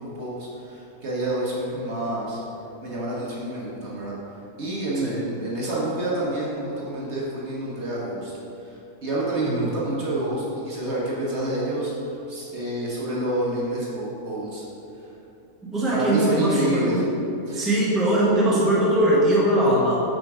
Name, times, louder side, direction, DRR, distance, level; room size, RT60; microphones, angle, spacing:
voice 1, 0.0-2.4 2.8-4.1 4.6-8.3 8.6-14.6 15.0-15.1 15.9-17.0 17.5-17.7, right 1 dB, 50° right, -6 dB, 1.3 m, -28 dB
voice 2, 15.7-17.0 17.5-20.0, right 1 dB, ahead, -6 dB, 1.0 m, -21 dB
6.2 x 4.4 x 4.8 m, 2.9 s
omnidirectional pair, 1.6 m